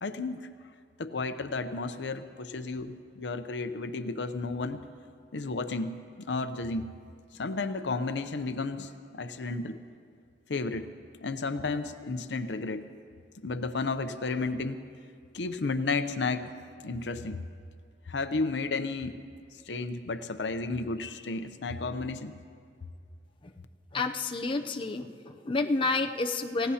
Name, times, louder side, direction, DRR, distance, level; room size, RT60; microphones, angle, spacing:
voice 1, 0.0-0.4 1.0-4.8 5.3-5.9 6.2-6.9 7.4-9.8 10.5-10.9 11.1-12.9 13.4-14.8 15.3-16.5 16.8-17.4 18.1-19.2 19.7-22.3, left 3 dB, 75° left, 9 dB, 0.7 m, -32 dB
voice 2, 23.9-26.7, left 3 dB, 30° left, 4 dB, 0.6 m, -29 dB
28.0 x 17.0 x 2.8 m, 2.2 s
head